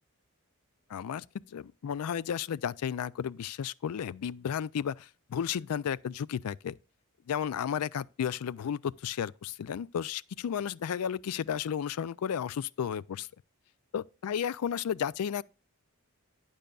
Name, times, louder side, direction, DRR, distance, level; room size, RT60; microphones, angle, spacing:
voice 1, 0.9-6.7 7.3-13.3 13.9-15.4, left 8 dB, 80° left, 0.4 m, -33 dB
12.0 x 8.9 x 2.3 m
head